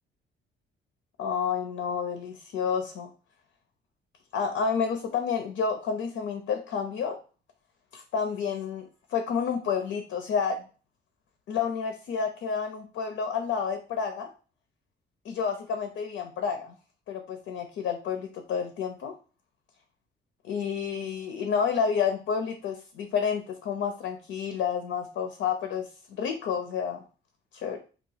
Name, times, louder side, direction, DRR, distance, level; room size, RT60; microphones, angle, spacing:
voice 1, 1.2-3.1 4.3-7.2 7.9-8.9 9.1-10.6 11.5-14.3 15.2-16.7 17.1-19.1 20.4-27.0 27.6-27.8, left 6 dB, 80° left, 5 dB, 0.6 m, -30 dB
2.9 x 2.3 x 3.8 m, 0.36 s
cardioid pair, 90°, 20 cm